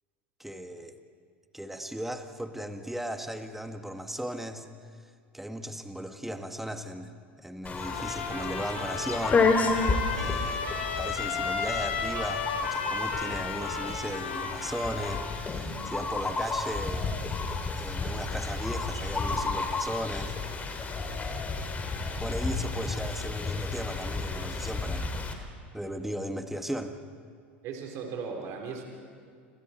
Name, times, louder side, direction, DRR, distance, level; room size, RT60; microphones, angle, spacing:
voice 1, 0.4-0.9 1.5-4.7 5.3-7.1 7.4-9.5 9.7-9.8 10.1-10.6 11.0-17.1 17.8-21.0 22.2-25.1 25.7-27.0, equal, 5° right, 7 dB, 1.8 m, -36 dB
sound 1, 7.6-25.3, left 3 dB, 25° left, 3.3 m, -31 dB
Trumpet, 7.8-15.4, left 5 dB, 75° left, 3.1 m, -34 dB
voice 2, 27.6-28.8, right 5 dB, 50° right, 2 dB, 3.9 m, -37 dB
30.0 x 26.5 x 4.5 m, 2.2 s
hypercardioid pair, 85°, 6 cm